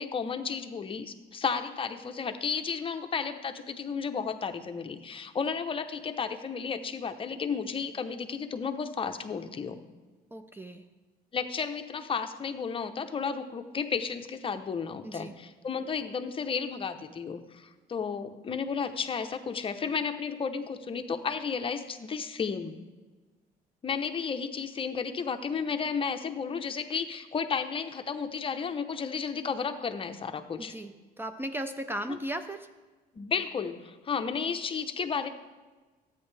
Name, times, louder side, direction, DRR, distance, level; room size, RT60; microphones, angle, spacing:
voice 1, 0.0-9.8 11.3-22.8 23.8-30.7 33.1-35.3, left 6 dB, 30° left, 8 dB, 0.7 m, -33 dB
voice 2, 10.3-10.9 15.0-15.3 30.6-32.7, right 1 dB, 15° right, 8 dB, 0.4 m, -36 dB
13.0 x 8.8 x 3.3 m, 1.3 s
cardioid pair, 110°, 17 cm